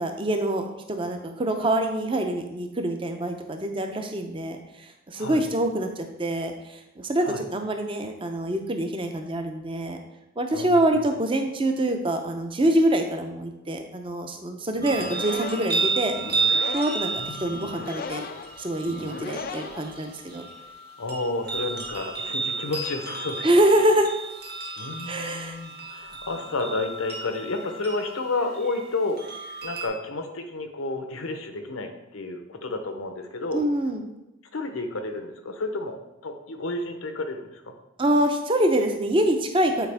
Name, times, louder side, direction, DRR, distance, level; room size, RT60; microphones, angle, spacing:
voice 1, 0.0-4.6 5.1-10.0 10.4-16.1 16.7-18.3 18.6-20.5 23.4-24.1 25.1-25.6 33.5-34.0 38.0-39.9, right 1 dB, 25° right, 5 dB, 0.6 m, -25 dB
voice 2, 5.1-5.5 7.3-7.4 10.5-11.0 17.2-17.7 21.0-23.5 24.8-29.2 29.6-33.6 34.5-36.0 36.2-37.7, left 2 dB, 80° left, 6 dB, 0.8 m, -31 dB
sound 1, 14.7-20.4, left 5 dB, 45° left, 0.3 m, -38 dB
sound 2, 14.8-29.9, right 4 dB, 50° right, 1.2 m, -32 dB
8.2 x 4.5 x 3.4 m, 0.93 s
head